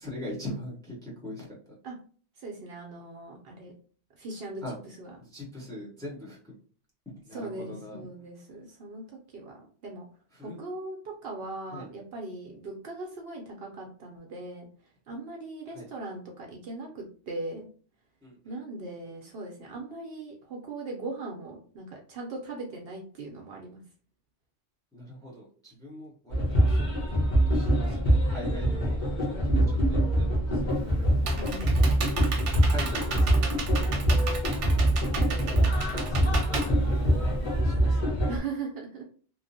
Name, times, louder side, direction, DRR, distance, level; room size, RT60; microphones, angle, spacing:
voice 1, 0.0-1.5 4.6-4.8 5.2-6.5 7.1-8.1 10.3-10.6 11.7-11.9 15.7-15.9 18.2-18.6 24.9-27.0 27.5-31.2 31.7-32.0 32.5-34.3 35.3-36.3 36.6-37.3 37.6-38.2, left 1 dB, 5° left, -4 dB, 0.7 m, -42 dB
voice 2, 2.4-3.7 4.1-5.2 7.3-10.1 10.4-14.7 15.1-17.7 18.4-23.8 31.4-31.7 38.3-39.0, right 3 dB, 60° right, 0 dB, 0.7 m, -39 dB
sound 1, 26.3-38.4, right 1 dB, 40° left, 1.0 m, -24 dB
Computer keyboard, 30.7-37.6, right 4 dB, 85° right, 0.9 m, -35 dB
3.0 x 2.0 x 2.6 m, 0.43 s
omnidirectional pair, 1.2 m